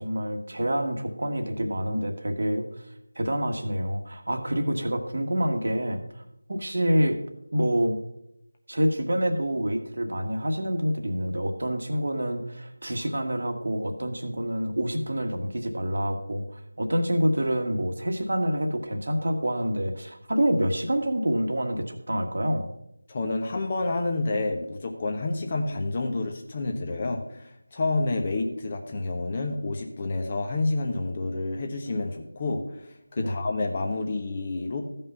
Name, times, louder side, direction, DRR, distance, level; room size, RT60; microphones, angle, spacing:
voice 1, 0.0-2.8 3.1-6.0 6.5-7.2 7.5-8.0 8.7-22.7 33.2-33.3, equal, 60° right, 6 dB, 1.5 m, -27 dB
voice 2, 23.1-32.6 33.1-34.8, left 2 dB, 30° left, 3 dB, 1.2 m, -29 dB
14.0 x 5.6 x 5.6 m, 0.81 s
figure-of-eight pair, 165°, 0 cm